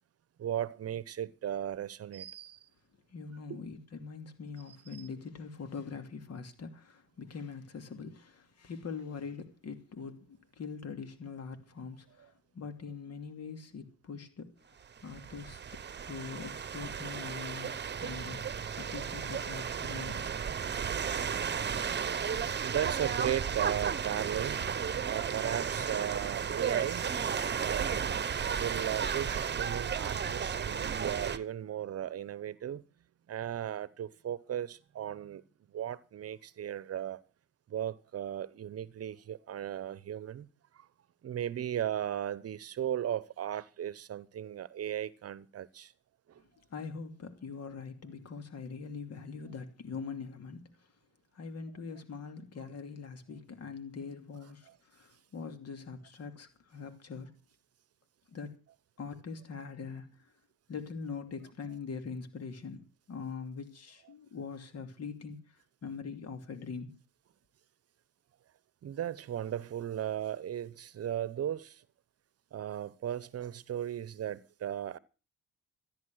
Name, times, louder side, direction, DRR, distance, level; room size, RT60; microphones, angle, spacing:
voice 1, 0.4-2.6 3.5-3.6 22.6-24.6 25.0-27.0 27.6-32.8 33.3-35.4 35.7-37.2 37.7-40.5 40.7-40.9 41.2-45.9 46.3-46.4 68.8-71.8 72.5-75.0, right 10 dB, 55° right, 0.9 m, -36 dB
voice 2, 3.1-14.6 15.0-15.6 16.1-20.3 46.7-50.9 51.3-57.4 58.3-58.6 59.0-60.3 60.7-67.0, left 5 dB, 55° left, 2.7 m, -43 dB
sound 1, 15.0-31.4, right 7 dB, 35° right, 1.1 m, -34 dB
14.0 x 10.5 x 6.3 m
cardioid pair, 90°, 30 cm